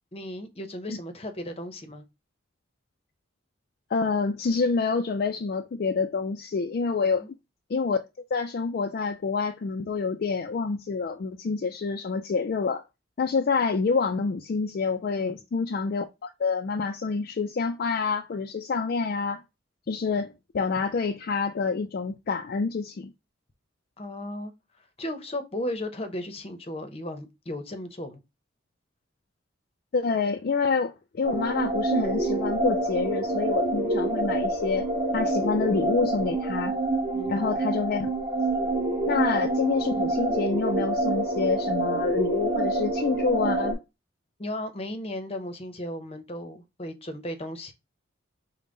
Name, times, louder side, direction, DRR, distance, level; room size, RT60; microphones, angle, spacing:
voice 1, 0.1-2.1 7.0-7.3 15.2-15.4 24.0-24.5 25.0-28.2 37.1-37.5 44.4-47.7, left 1 dB, 30° left, 0.7 m, -35 dB
voice 2, 3.9-7.3 7.7-8.0 8.3-12.8 13.2-19.4 19.9-23.1 29.9-34.9 35.1-36.8 37.3-38.1 39.1-43.8, left 4 dB, 50° left, 0.3 m, -27 dB
sound 1, 31.2-43.7, right 2 dB, 25° right, 1.1 m, -27 dB
5.3 x 2.1 x 3.7 m
head